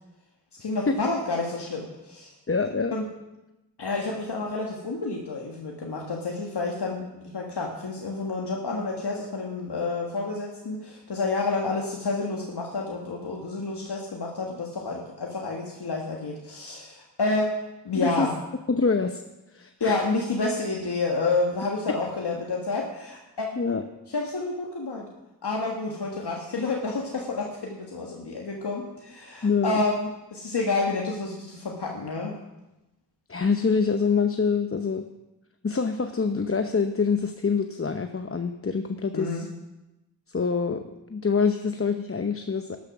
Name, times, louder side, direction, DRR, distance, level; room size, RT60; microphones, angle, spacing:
voice 1, 0.6-2.3 2.9-3.0 3.8-7.0 7.3-17.6 17.8-18.3 19.8-23.6 24.1-25.1 25.4-32.4 39.1-39.5, left 3 dB, 70° left, -1 dB, 1.7 m, -29 dB
voice 2, 2.5-2.9 17.9-18.3 18.7-19.2 19.5-20.0 23.6-23.8 29.4-29.8 33.3-35.0 35.6-39.5 40.3-40.8 41.1-42.8, left 5 dB, 35° left, 7 dB, 0.8 m, -25 dB
12.5 x 10.5 x 6.0 m, 0.98 s
cardioid pair, 50°, 41 cm